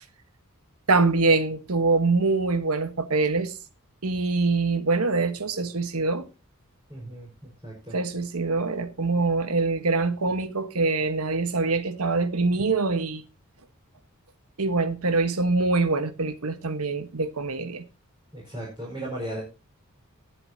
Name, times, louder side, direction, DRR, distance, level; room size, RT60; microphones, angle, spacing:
voice 1, 0.9-3.5 4.0-6.3 7.9-13.2 14.6-17.8, right 3 dB, 90° right, 1.3 m, -24 dB
voice 2, 6.9-7.9 18.3-19.4, right 1 dB, 20° right, 4.8 m, -36 dB
19.0 x 7.9 x 2.8 m
head